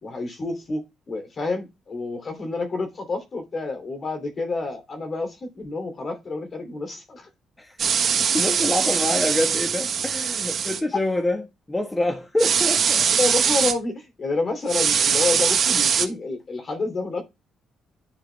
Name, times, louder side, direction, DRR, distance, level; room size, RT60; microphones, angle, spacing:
voice 1, 0.0-7.3 13.2-17.2, left 3 dB, 40° left, 2.9 m, -29 dB
voice 2, 7.6-13.1, left 1 dB, 15° left, 1.4 m, -26 dB
sound 1, 7.8-10.8 12.4-13.7 14.7-16.1, right 7 dB, 55° right, 1.4 m, -22 dB
10.5 x 4.9 x 3.4 m
cardioid pair, 90°, 0 cm